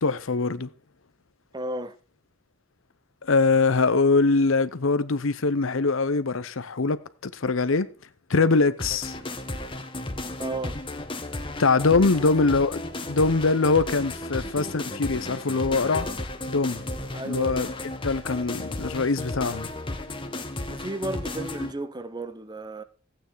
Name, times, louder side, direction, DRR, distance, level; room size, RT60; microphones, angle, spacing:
voice 1, 0.0-0.7 3.2-7.9 8.3-9.2 11.6-12.8 13.1-16.1 16.5-16.8 17.3-17.7 18.0-19.7, left 3 dB, 70° left, 0.8 m, -23 dB
voice 2, 1.5-1.9 10.4-10.8 12.2-12.3 17.1-17.6 20.7-22.8, right 1 dB, 20° right, 0.8 m, -33 dB
sound 1, 8.8-21.7, left 2 dB, 25° left, 1.2 m, -34 dB
15.0 x 9.1 x 4.7 m
head